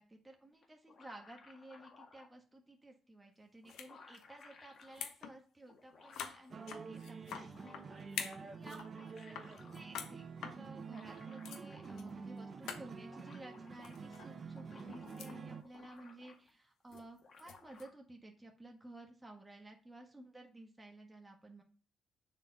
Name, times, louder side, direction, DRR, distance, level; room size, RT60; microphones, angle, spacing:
voice 1, 0.0-9.4 9.7-21.6, right 1 dB, 10° right, 1 dB, 1.5 m, -55 dB
sound 1, 0.6-2.3 3.3-3.4 3.6-5.0 5.7-6.5 7.0-8.0 8.7-9.9 10.8-12.2 12.5-12.6 12.8-14.0 14.4-16.6 16.9-17.9, left 4 dB, 50° left, 1.9 m, -60 dB
sound 2, 3.7-3.9 4.1-4.4 4.8-5.4 5.6-5.7 6.1-7.8 8.1-8.9 9.2-10.1 10.4-10.6 11.1-11.2 11.4-11.6 12.0-12.1 12.4-12.5 12.6-12.8 13.8-14.3 14.7-15.4 15.7-16.0 16.9-17.8, left 7 dB, 85° left, 1.1 m, -46 dB
sound 3, 6.5-15.6, right 5 dB, 40° right, 1.2 m, -48 dB
7.1 x 4.5 x 5.2 m, 0.38 s
cardioid pair, 90°, 0 cm